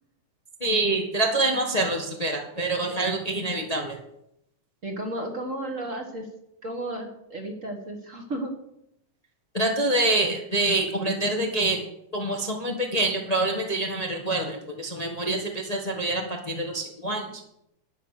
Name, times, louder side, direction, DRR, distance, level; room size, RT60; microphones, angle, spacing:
voice 1, 0.6-4.0 9.5-11.8 12.1-17.4, right 2 dB, 75° left, 1 dB, 0.3 m, -26 dB
voice 2, 4.8-6.3 6.6-8.5, right 1 dB, 35° right, 4 dB, 1.4 m, -33 dB
12.0 x 9.2 x 6.6 m, 0.80 s
omnidirectional pair, 3.6 m